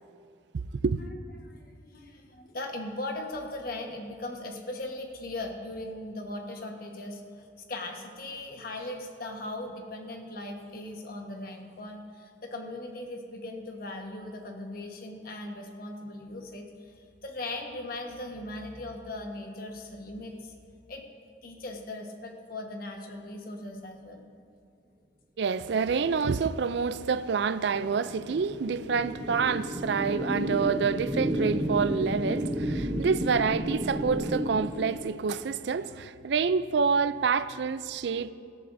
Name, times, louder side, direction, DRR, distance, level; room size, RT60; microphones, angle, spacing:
voice 1, 0.5-1.0 25.4-38.3, right 5 dB, 60° right, 0.4 m, -27 dB
voice 2, 1.4-20.5 20.9-21.0 21.4-24.3, left 2 dB, 50° left, 1.3 m, -39 dB
sound 1, 26.7-35.4, right 1 dB, 20° right, 0.8 m, -32 dB
18.0 x 13.5 x 2.7 m
head